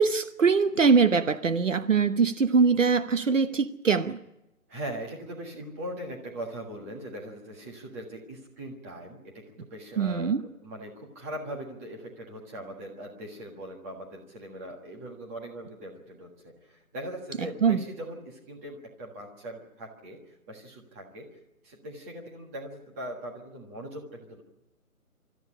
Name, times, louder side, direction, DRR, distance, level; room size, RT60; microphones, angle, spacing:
voice 1, 0.0-4.2 10.0-10.5 17.4-17.8, right 5 dB, 55° right, 1.1 m, -23 dB
voice 2, 4.7-10.3 10.6-20.2 20.5-21.3 21.6-24.4, right 1 dB, 10° right, 1.5 m, -40 dB
25.5 x 14.0 x 9.9 m
hypercardioid pair, 170°, 44 cm